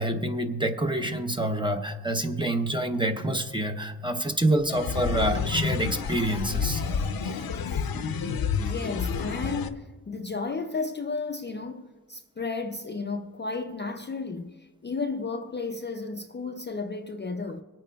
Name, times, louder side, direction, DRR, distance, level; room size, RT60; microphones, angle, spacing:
voice 1, 0.0-6.8 7.2-7.4, right 1 dB, 15° right, 0.7 m, -27 dB
sound 1, 4.7-9.7, left 6 dB, 70° left, 0.6 m, -29 dB
voice 2, 8.6-17.6, left 4 dB, 30° left, 0.4 m, -33 dB
25.5 x 8.8 x 2.3 m
wide cardioid pair, 115°, 37 cm